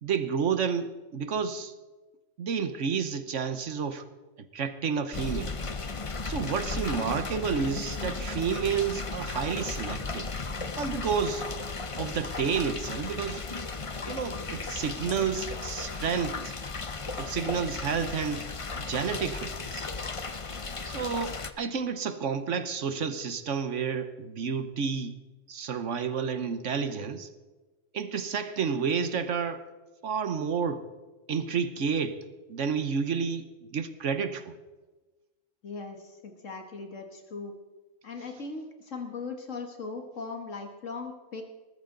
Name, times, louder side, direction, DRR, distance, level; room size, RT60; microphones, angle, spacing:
voice 1, 0.0-1.7 2.4-4.0 4.5-5.5 6.2-10.3 10.8-11.5 12.0-13.4 14.1-16.5 17.2-18.5 18.7-19.9 20.8-25.2 25.5-27.3 27.9-29.6 30.0-30.8 31.3-33.4 33.7-34.5, right 6 dB, 70° right, 1.3 m, -30 dB
sound 1, 5.1-21.5, left 4 dB, 30° left, 0.8 m, -35 dB
voice 2, 35.6-37.5 38.0-41.4, left 4 dB, 75° left, 1.9 m, -39 dB
19.5 x 13.5 x 3.9 m
omnidirectional pair, 1.3 m